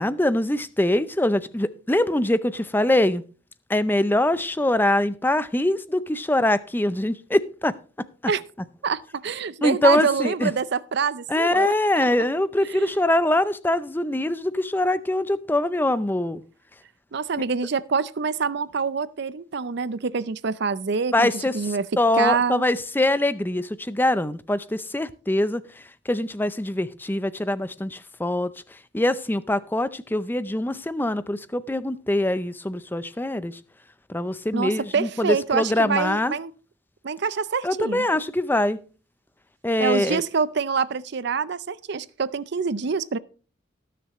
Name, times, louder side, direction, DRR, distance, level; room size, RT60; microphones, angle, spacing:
voice 1, 0.0-3.2 3.7-7.7 9.6-10.5 11.3-16.4 21.1-25.6 26.1-28.5 28.9-33.6 34.1-36.3 37.6-38.8 39.6-40.2, left 1 dB, 10° left, 0.5 m, -23 dB
voice 2, 8.8-12.1 12.6-12.9 17.1-21.8 22.2-22.6 34.5-36.5 37.0-38.1 39.8-43.2, right 5 dB, 55° right, 0.5 m, -26 dB
19.0 x 6.7 x 3.1 m
head